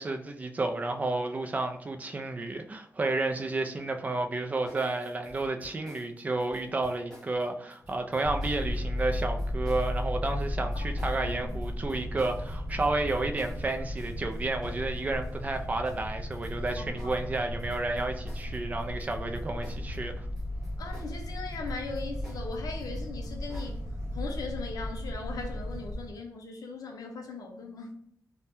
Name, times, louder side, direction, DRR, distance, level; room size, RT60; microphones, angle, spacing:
voice 1, 0.0-20.3, right 2 dB, 25° right, 5 dB, 0.3 m, -31 dB
sound 1, 4.7-20.0 20.2-23.8, equal, 10° left, 0.8 m, -52 dB
sound 2, 8.2-26.1, left 1 dB, 40° right, 0.8 m, -35 dB
voice 2, 11.2-11.6 16.8-17.2 20.8-23.8 24.1-27.9, left 4 dB, 75° left, 3 dB, 0.6 m, -39 dB
2.7 x 2.1 x 3.3 m, 0.66 s
wide cardioid pair, 150°, 6 cm